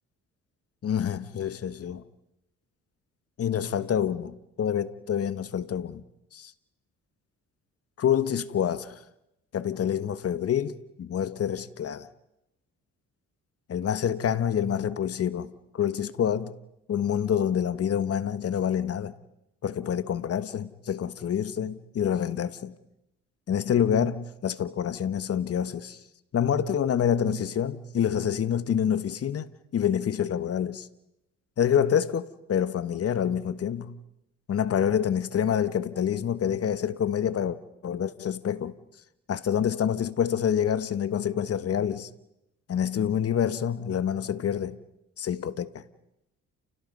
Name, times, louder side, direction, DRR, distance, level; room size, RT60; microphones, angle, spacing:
voice 1, 0.8-2.0 3.4-6.0 6.3-6.4 8.0-9.0 9.5-12.1 13.7-15.5 15.7-16.6 16.9-19.1 19.6-22.7 23.5-26.0 26.3-29.5 29.7-30.9 31.6-34.0 34.5-38.7 39.3-42.1 42.7-44.8 45.2-45.8, left 9 dB, 50° left, 1.4 m, -27 dB
29.5 x 29.5 x 5.5 m
cardioid pair, 90°, 30 cm